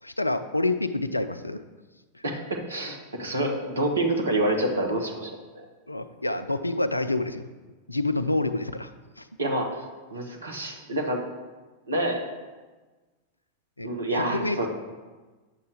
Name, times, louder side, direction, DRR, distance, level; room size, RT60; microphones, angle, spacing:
voice 1, 0.0-1.6 2.1-2.2 5.2-5.3 5.9-7.4 7.9-8.9 9.2-9.3 13.8-14.7, left 2 dB, 85° left, 11 dB, 0.4 m, -28 dB
voice 2, 2.2-5.6 9.4-9.7 10.1-11.2 11.9-12.2 13.8-14.7, right 1 dB, 75° right, 2 dB, 1.3 m, -27 dB
9.6 x 6.8 x 3.5 m, 1.3 s
figure-of-eight pair, 90°, 0 cm